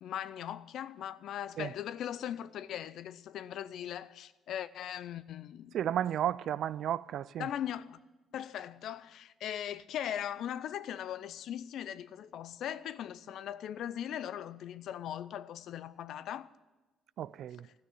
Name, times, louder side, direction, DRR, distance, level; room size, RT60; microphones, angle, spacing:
voice 1, 0.0-5.8 7.4-8.0 8.3-16.5 17.6-17.7, left 10 dB, 70° left, 0.5 m, -39 dB
voice 2, 5.7-7.5 17.2-17.7, right 10 dB, 65° right, 0.3 m, -33 dB
13.0 x 6.4 x 9.7 m
cardioid pair, 90°, 0 cm